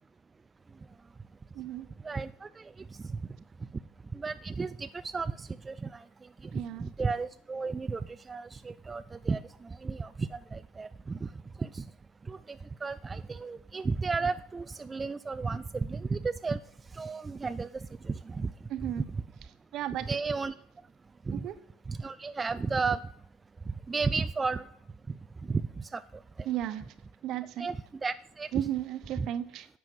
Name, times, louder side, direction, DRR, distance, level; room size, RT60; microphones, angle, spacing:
voice 1, 1.5-1.9 6.5-6.9 18.7-19.1 19.7-20.2 21.3-21.5 26.4-26.9 27.2-27.7 28.5-29.7, right 12 dB, 55° right, 12 dB, 0.9 m, -34 dB
voice 2, 2.0-2.6 4.1-6.0 6.5-9.4 9.8-11.3 11.6-11.8 12.3-16.6 16.9-18.5 20.1-20.5 21.3-21.5 21.9-23.0 23.9-24.6 25.5-25.6 25.9-26.0 27.6-27.8 28.0-28.5 29.2-29.3, right 4 dB, 20° right, 11 dB, 0.4 m, -33 dB
11.0 x 7.5 x 4.7 m, 0.67 s
supercardioid pair, 95°, 0 cm